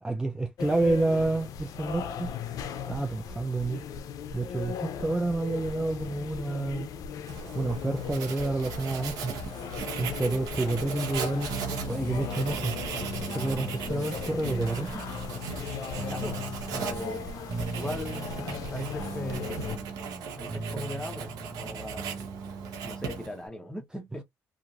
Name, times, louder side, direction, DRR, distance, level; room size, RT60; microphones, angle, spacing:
voice 1, 0.0-2.3 2.9-3.8 4.3-6.9 7.5-9.3 10.0-11.5 11.9-12.8 13.3-15.1, right 2 dB, 10° right, 0.4 m, -29 dB
sound 1, 0.6-19.8, left 7 dB, 70° left, 0.5 m, -37 dB
Writing, 7.3-23.5, right 6 dB, 85° right, 0.9 m, -38 dB
sound 2, 11.5-23.4, right 5 dB, 35° right, 0.8 m, -40 dB
voice 2, 16.0-16.4 16.7-17.2 17.7-19.9 20.4-22.2 22.8-24.2, equal, 10° left, 1.0 m, -39 dB
2.9 x 2.5 x 2.4 m
cardioid pair, 80°, 6 cm